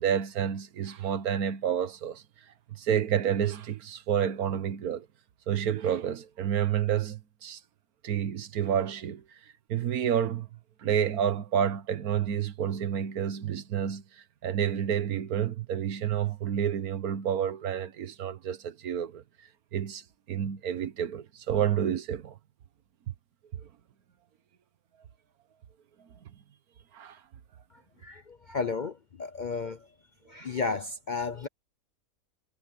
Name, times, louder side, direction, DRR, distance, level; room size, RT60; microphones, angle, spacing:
voice 1, 0.0-2.2 2.7-5.1 5.5-7.6 8.0-9.4 9.7-10.5 10.8-19.2 19.7-22.4 23.5-23.6 26.9-27.2, right 9 dB, 85° right, 1.5 m, -29 dB
voice 2, 28.0-29.9 30.3-31.5, left 4 dB, 50° left, 0.5 m, -33 dB
omnidirectional pair, 1.5 m